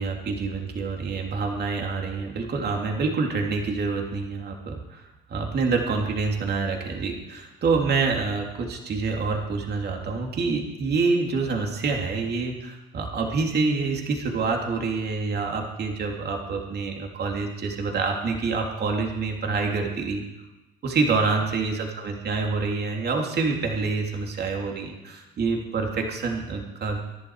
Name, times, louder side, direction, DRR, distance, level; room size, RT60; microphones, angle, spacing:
voice 1, 0.0-20.2 20.8-27.0, right 4 dB, 55° right, 1 dB, 3.1 m, -27 dB
23.5 x 11.5 x 4.9 m, 1.0 s
supercardioid pair, 60°, 21 cm